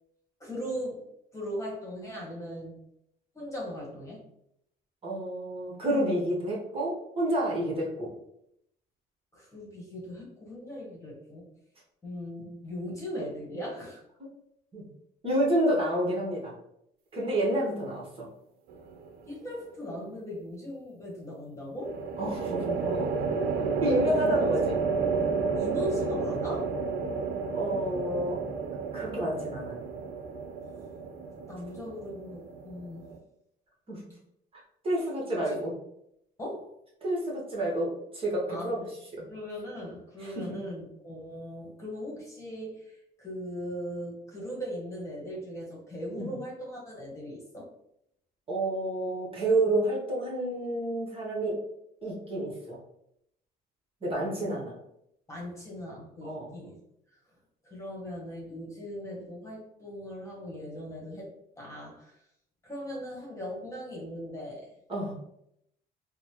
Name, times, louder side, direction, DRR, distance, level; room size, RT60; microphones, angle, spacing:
voice 1, 0.4-1.0 1.3-2.8 3.3-4.2 9.3-11.4 12.0-14.0 19.3-22.0 23.8-24.5 25.5-26.7 30.8-30.9 31.5-33.1 35.4-35.6 36.4-36.7 38.5-38.8 39.3-47.7 54.3-54.6 55.3-56.8 57.6-61.3 61.6-62.1 62.6-64.7, equal, 15° left, -4 dB, 1.2 m, -39 dB
voice 2, 5.0-8.1 14.7-14.9 15.2-16.5 17.1-18.1 22.2-23.3 23.8-24.8 27.5-28.4 28.9-29.8 33.9-34.0 34.8-35.5 37.0-38.8 39.2-39.3 40.2-40.3 46.2-46.3 48.5-51.6 52.0-52.8 54.0-54.7 56.2-56.5 64.9-65.1, right 1 dB, 35° right, -4 dB, 1.1 m, -29 dB
sound 1, 18.7-19.3 21.8-33.2, right 5 dB, 70° right, 0.6 m, -31 dB
4.0 x 2.0 x 2.8 m, 0.76 s
cardioid pair, 110°, 17 cm